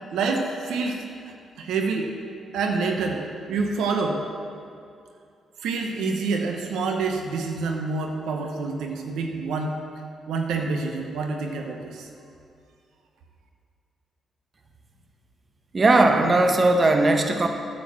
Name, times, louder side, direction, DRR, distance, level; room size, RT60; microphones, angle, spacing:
voice 1, 0.1-1.0 1.6-2.1 2.5-4.2 5.6-9.7 10.3-12.1, right 4 dB, 85° right, 3 dB, 0.9 m, -27 dB
voice 2, 15.7-17.5, right 2 dB, 35° right, 4 dB, 1.0 m, -18 dB
8.8 x 6.4 x 7.4 m, 2.4 s
cardioid pair, 65°, 0 cm